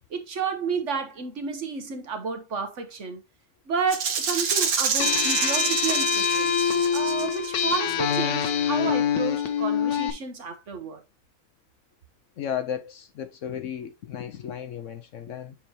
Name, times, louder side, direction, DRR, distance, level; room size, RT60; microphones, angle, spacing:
voice 1, 0.1-3.2 3.7-11.0, right 5 dB, 55° right, 1.3 m, -31 dB
Rattle (instrument), 3.9-7.7, right 6 dB, 70° right, 1.5 m, -27 dB
sound 1, 5.0-10.1, left 7 dB, 80° left, 1.3 m, -25 dB
voice 2, 12.4-15.6, left 9 dB, 65° left, 0.9 m, -34 dB
7.4 x 4.7 x 2.8 m
omnidirectional pair, 1.6 m